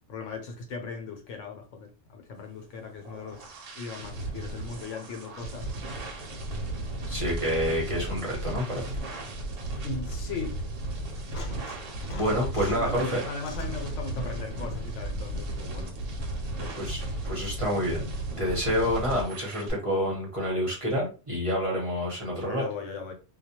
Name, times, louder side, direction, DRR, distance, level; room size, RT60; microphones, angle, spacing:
voice 1, 0.1-3.5 3.7-5.7 9.8-10.5 12.7-16.0 16.6-16.8 18.8-18.9 22.5-23.1, left 4 dB, 80° left, 1.0 m, -38 dB
sound 1, 2.7-19.7, right 1 dB, 80° right, 1.0 m, -35 dB
voice 2, 7.1-8.8 12.1-13.2 16.8-18.1 18.4-22.6, equal, 30° right, 0.9 m, -28 dB
sound 2, 11.1-13.0 13.4-14.5 16.1-16.2, left 2 dB, 60° left, 0.5 m, -44 dB
2.3 x 2.2 x 2.8 m
omnidirectional pair, 1.3 m